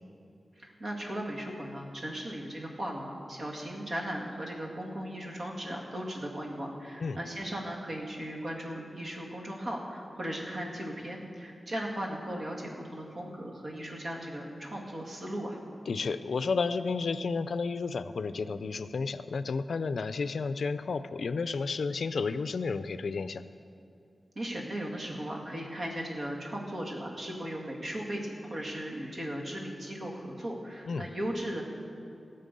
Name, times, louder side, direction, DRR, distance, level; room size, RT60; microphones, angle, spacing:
voice 1, 0.6-15.6 24.4-31.6, equal, 55° right, -2 dB, 2.1 m, -37 dB
voice 2, 15.9-23.4 30.9-31.1, left 4 dB, 80° left, 12 dB, 0.4 m, -32 dB
18.0 x 6.7 x 5.3 m, 2.6 s
wide cardioid pair, 90°, 0 cm